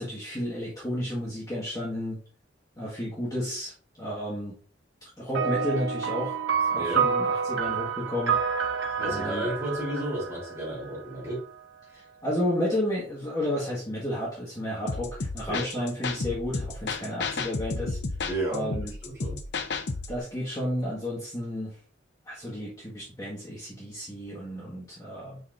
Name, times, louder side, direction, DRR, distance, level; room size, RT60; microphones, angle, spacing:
voice 1, 0.0-2.2 2.8-4.5 5.2-6.3 6.7-8.4 9.0-9.5 12.2-18.0 18.5-18.9 20.1-21.8 22.2-25.4, equal, 20° left, -7 dB, 1.7 m, -32 dB
sound 1, 5.3-11.1, right 6 dB, 70° right, 0.9 m, -28 dB
voice 2, 6.7-7.1 9.0-11.4 11.9-12.0 15.5-15.7 18.3-18.8 19.0-19.4, right 1 dB, 15° right, -5 dB, 3.5 m, -32 dB
sound 2, 14.9-20.2, left 3 dB, 60° left, 0.7 m, -32 dB
6.6 x 5.6 x 2.6 m, 0.40 s
head